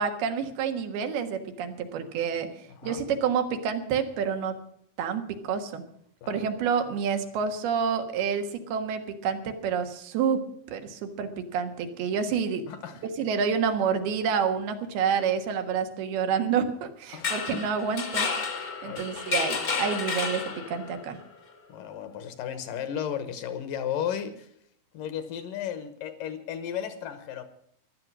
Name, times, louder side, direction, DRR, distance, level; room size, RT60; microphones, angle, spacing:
voice 1, 0.0-2.5 2.8-4.5 5.0-5.8 6.3-10.4 10.7-12.6 13.0-18.3 18.8-20.4 20.7-21.2, right 6 dB, 85° right, 3.4 m, -28 dB
voice 2, 2.7-3.0 6.2-6.5 12.7-13.0 17.1-17.6 18.8-19.1 21.7-24.5 24.9-27.4, left 9 dB, 70° left, 2.5 m, -34 dB
sound 1, 17.1-21.0, left 4 dB, 45° left, 1.1 m, -31 dB
15.0 x 12.0 x 6.1 m
omnidirectional pair, 4.4 m